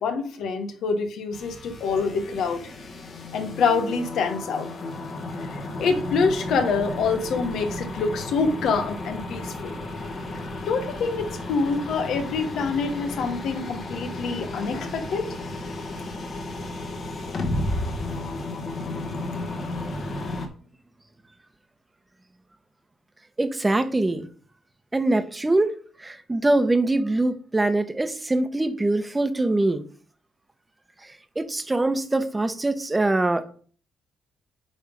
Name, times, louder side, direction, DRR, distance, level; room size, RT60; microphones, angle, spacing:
voice 1, 0.0-2.6 3.3-4.7 5.5-9.7 10.7-15.3, left 4 dB, 75° left, 1.3 m, -26 dB
sound 1, 1.3-20.5, left 2 dB, 50° left, 1.7 m, -33 dB
voice 2, 23.4-24.3 24.9-25.7 26.0-29.8 31.4-33.4, right 2 dB, 15° right, 1.1 m, -23 dB
9.6 x 3.6 x 5.2 m
cardioid pair, 90°, 0 cm